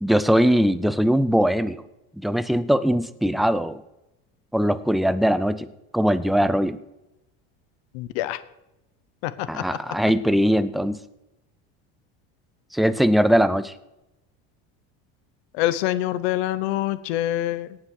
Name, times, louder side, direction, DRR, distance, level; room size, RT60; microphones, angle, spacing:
voice 1, 0.0-1.8 2.2-3.8 4.5-5.7 5.9-6.8 9.5-11.0 12.7-13.7, equal, ahead, 14 dB, 0.5 m, -21 dB
voice 2, 7.9-8.4 9.2-9.8 10.0-10.1 15.5-17.8, left 14 dB, 85° left, 14 dB, 0.9 m, -26 dB
17.5 x 6.1 x 6.5 m, 0.92 s
cardioid pair, 135°, 32 cm